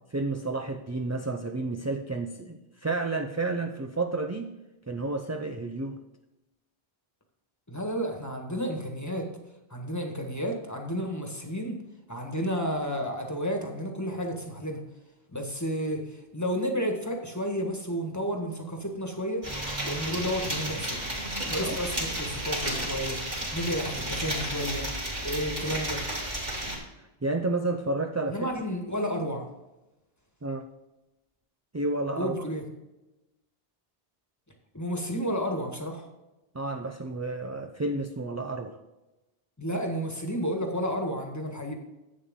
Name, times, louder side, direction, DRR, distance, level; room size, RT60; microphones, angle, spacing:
voice 1, 0.1-4.5 4.9-6.0 21.6-21.8 27.2-28.5 30.4-30.7 31.7-32.3 36.5-38.8, right 2 dB, 25° right, 4 dB, 0.4 m, -31 dB
voice 2, 7.7-9.3 9.7-11.8 12.1-14.8 15.3-19.4 19.8-21.1 21.5-24.9 25.2-26.0 28.3-29.5 32.2-32.6 34.7-36.1 39.6-41.7, equal, 15° left, 2 dB, 1.5 m, -31 dB
sound 1, 19.4-26.8, right 1 dB, 45° right, 3.3 m, -32 dB
11.0 x 8.4 x 3.7 m, 1.0 s
omnidirectional pair, 1.1 m